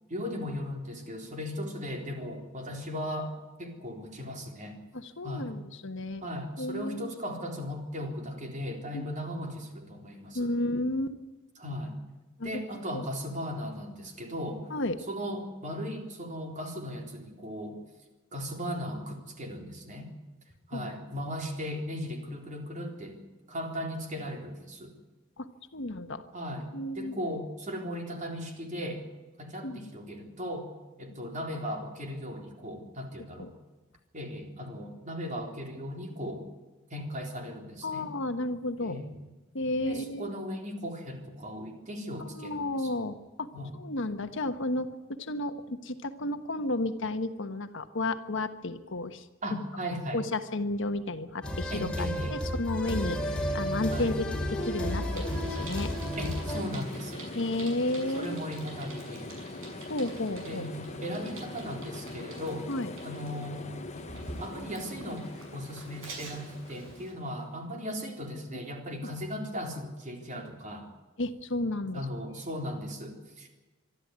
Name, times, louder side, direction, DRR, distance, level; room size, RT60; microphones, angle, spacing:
voice 1, 0.1-4.8 5.2-5.6 6.2-10.5 11.6-12.0 12.4-14.7 15.1-17.8 18.3-20.1 20.7-23.2 23.5-24.9 26.3-29.0 29.4-30.7 31.0-33.5 34.1-36.4 36.9-38.1 38.8-39.2 39.9-42.9 43.5-43.7 49.4-50.2 51.7-52.4 53.9-54.1 56.2-57.3 58.1-59.3 60.4-62.7 63.0-63.6 64.4-70.9 71.9-73.5, equal, 40° right, 3 dB, 4.0 m, -37 dB
voice 2, 4.9-6.2 6.6-7.1 8.9-9.0 10.3-11.2 12.4-12.6 12.9-13.0 14.7-15.0 20.7-20.9 25.4-25.5 25.7-26.2 26.7-27.1 29.6-29.9 33.4-33.5 37.8-38.9 39.5-40.4 42.3-43.5 43.8-49.2 50.1-53.2 53.5-54.1 54.5-55.9 57.3-58.4 59.9-60.6 62.7-62.9 69.0-69.1 71.2-72.0, left 2 dB, 65° left, 9 dB, 1.3 m, -32 dB
sound 1, 51.4-56.6, equal, 5° left, 2.8 m, -32 dB
sound 2, 52.8-67.5, left 2 dB, 35° left, 1.1 m, -42 dB
Bicycle, 55.1-67.1, right 2 dB, 70° right, 6.6 m, -47 dB
24.5 x 12.5 x 9.6 m, 1.2 s
head